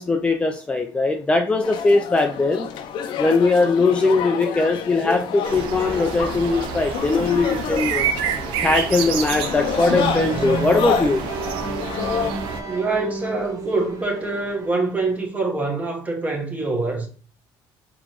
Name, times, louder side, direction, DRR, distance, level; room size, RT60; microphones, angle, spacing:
voice 1, 0.0-2.7 3.2-8.0 8.6-11.2, left 3 dB, 15° left, 0.4 m, -20 dB
sound 1, 1.6-12.3, left 8 dB, 65° left, 0.5 m, -29 dB
sound 2, 5.4-12.6, right 7 dB, 75° right, 0.6 m, -28 dB
sound 3, 9.9-15.3, right 5 dB, 40° right, 0.8 m, -31 dB
voice 2, 12.7-17.1, right 3 dB, 15° right, 1.1 m, -25 dB
4.0 x 3.0 x 3.0 m
cardioid pair, 115°, 9 cm